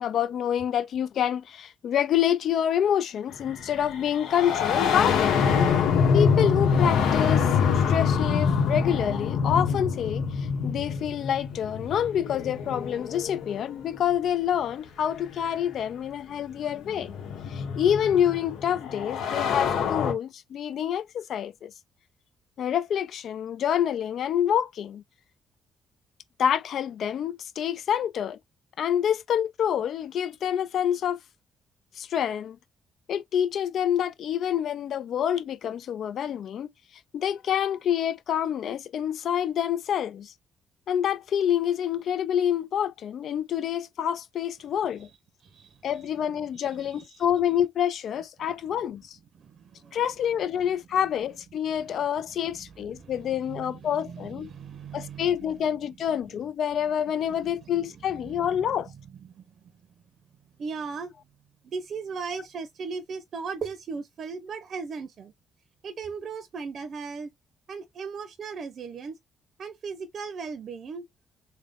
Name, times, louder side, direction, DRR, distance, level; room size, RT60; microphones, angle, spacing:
voice 1, 0.0-5.4 6.1-17.1 17.5-21.7 22.6-25.0 26.4-28.4 28.8-31.2 32.0-32.6 33.1-36.7 37.1-40.3 40.9-45.1 45.8-49.2 49.9-54.5 54.9-58.9, left 9 dB, 65° left, 0.5 m, -27 dB
sound 1, 3.4-14.0 15.3-15.4 16.4-20.1, left 6 dB, 85° left, 1.0 m, -25 dB
voice 2, 45.4-46.1 46.3-47.3 49.3-50.0 52.3-55.7 56.8-56.9 57.2-58.6 59.2-59.5 60.6-61.1 61.6-65.3 65.8-67.3 67.7-69.2 69.6-71.0, right 5 dB, 55° right, 0.7 m, -38 dB
3.4 x 2.2 x 3.7 m
cardioid pair, 90°, 0 cm